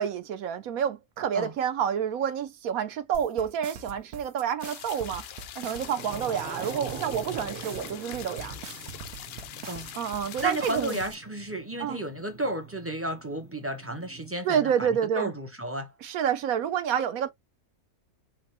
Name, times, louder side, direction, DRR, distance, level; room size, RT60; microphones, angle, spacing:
voice 1, 0.0-5.2 5.6-8.5 9.9-11.0 11.8-12.0 14.4-15.3 16.0-17.3, right 8 dB, 75° right, 1.2 m, -28 dB
sound 1, 3.1-11.1, right 6 dB, 55° right, 0.9 m, -43 dB
sound 2, 4.6-11.1, left 10 dB, 70° left, 0.6 m, -43 dB
sound 3, 5.6-14.4, right 4 dB, 40° right, 1.3 m, -44 dB
voice 2, 10.4-15.9, right 1 dB, 15° right, 0.4 m, -33 dB
4.5 x 2.2 x 3.0 m
omnidirectional pair, 1.5 m